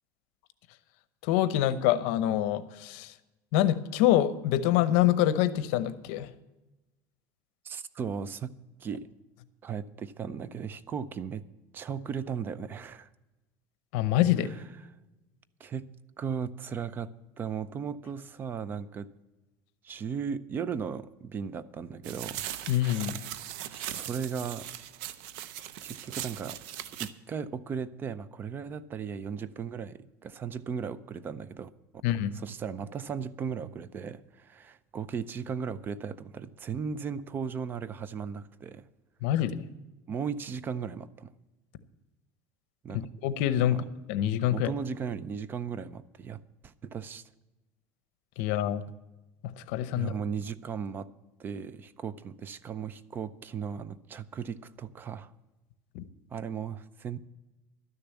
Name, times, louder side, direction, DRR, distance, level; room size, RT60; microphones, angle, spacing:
voice 1, 1.2-3.1 3.5-6.3 13.9-14.5 22.7-23.1 32.0-32.3 39.2-39.7 43.2-44.7 48.4-48.8 49.7-50.1 55.9-56.0, left 12 dB, 70° left, 14 dB, 0.8 m, -26 dB
voice 2, 7.6-8.5 8.8-9.1 9.6-11.4 11.7-13.1 14.5-14.6 15.6-15.9 16.2-19.1 19.8-22.5 23.2-23.4 23.7-24.7 25.8-26.6 27.0-31.7 32.1-38.8 40.1-41.3 42.8-43.1 43.7-43.8 44.5-47.2 49.9-51.1 51.4-55.3 56.3-57.2, right 6 dB, 25° right, 17 dB, 0.5 m, -36 dB
sound 1, 22.0-27.1, right 12 dB, 70° right, 0.7 m, -39 dB
12.5 x 6.8 x 8.1 m, 1.1 s
cardioid pair, 145°, 8 cm